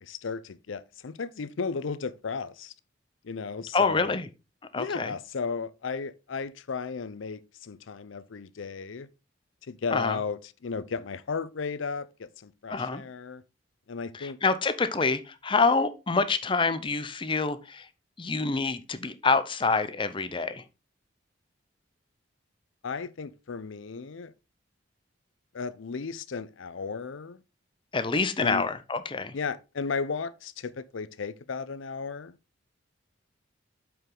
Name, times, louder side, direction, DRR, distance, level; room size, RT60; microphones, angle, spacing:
voice 1, 0.0-2.7 3.2-4.1 4.8-9.1 9.6-13.4 13.9-14.4 22.8-24.3 25.5-27.4 28.4-28.7 29.3-32.4, left 5 dB, 80° left, 0.5 m, -35 dB
voice 2, 3.7-4.3 4.7-5.1 9.9-10.2 12.7-13.0 14.1-17.9 18.2-20.6 27.9-29.3, left 4 dB, 25° left, 0.6 m, -26 dB
8.1 x 4.7 x 3.8 m
head